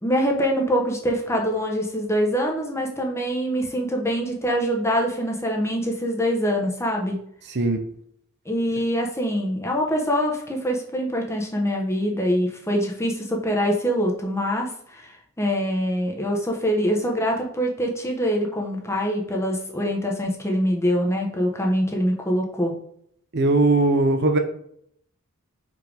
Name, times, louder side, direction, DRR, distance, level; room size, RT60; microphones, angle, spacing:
voice 1, 0.0-7.2 8.4-22.8, equal, 10° left, 0 dB, 1.1 m, -24 dB
voice 2, 7.5-7.8 23.3-24.4, right 2 dB, 50° right, 6 dB, 0.8 m, -19 dB
5.7 x 5.0 x 3.5 m, 0.69 s
head